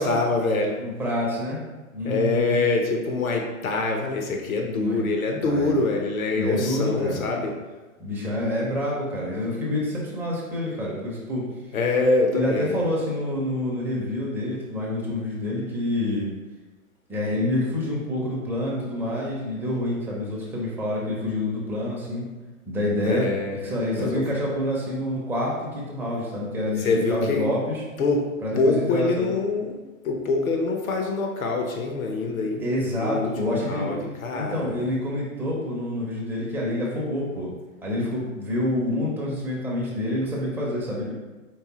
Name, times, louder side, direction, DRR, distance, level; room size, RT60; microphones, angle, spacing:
voice 1, 0.0-0.7 2.0-7.5 11.7-12.8 23.0-23.6 23.9-24.2 26.8-27.5 28.0-28.2 28.6-32.6 33.0-34.7, left 3 dB, 85° left, 2 dB, 0.9 m, -25 dB
voice 2, 0.8-1.6 1.9-2.6 4.7-5.0 5.4-5.8 6.3-7.2 8.0-11.4 12.3-16.3 17.1-22.2 22.7-23.3 23.6-27.8 28.4-29.3 32.6-33.9 34.3-37.5 37.8-41.1, left 1 dB, 5° right, -4 dB, 0.5 m, -27 dB
4.5 x 3.2 x 2.9 m, 1.2 s
hypercardioid pair, 125°, 41 cm